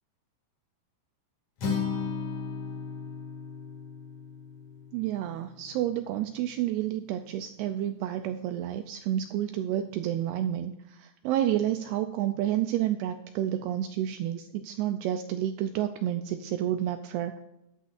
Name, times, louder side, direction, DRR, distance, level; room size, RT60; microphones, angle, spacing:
Acoustic guitar, 1.6-5.8, left 5 dB, 45° left, 3.0 m, -35 dB
voice 1, 4.9-17.4, right 11 dB, 85° right, 8 dB, 2.3 m, -30 dB
14.5 x 10.5 x 2.5 m, 0.88 s
omnidirectional pair, 5.1 m